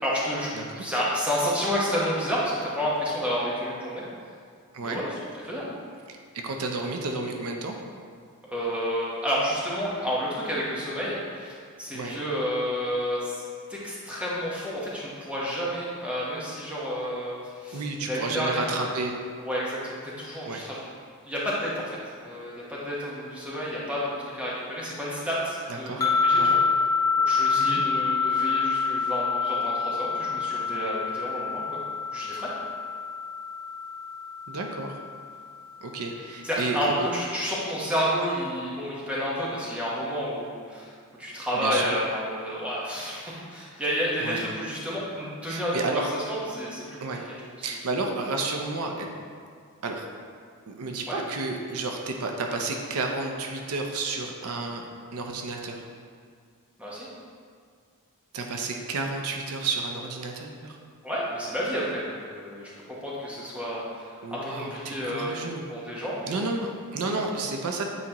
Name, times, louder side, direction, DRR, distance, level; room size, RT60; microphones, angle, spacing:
voice 1, 0.0-0.5 0.8-4.0 4.8-5.2 5.4-5.7 8.5-18.6 19.4-20.8 21.2-26.6 27.2-31.8 32.1-32.5 36.4-40.9 41.2-47.0 47.9-48.2 51.1-51.2 56.8-57.1 61.0-65.3 65.7-66.5, equal, 5° right, -7 dB, 1.1 m, -30 dB
voice 2, 0.5-0.9 4.7-5.0 6.1-7.8 11.9-12.1 17.7-19.1 20.5-20.6 25.7-26.0 26.3-26.6 27.6-27.8 34.5-35.0 35.8-37.1 41.5-41.9 44.2-44.4 45.5-46.1 47.0-47.2 47.6-49.1 49.8-50.1 50.7-55.8 58.3-60.8 64.2-65.6 66.3-67.8, right 3 dB, 75° right, 2 dB, 0.6 m, -31 dB
sound 1, 26.0-35.3, left 5 dB, 15° left, 0.4 m, -26 dB
8.3 x 4.1 x 2.9 m, 2.1 s
head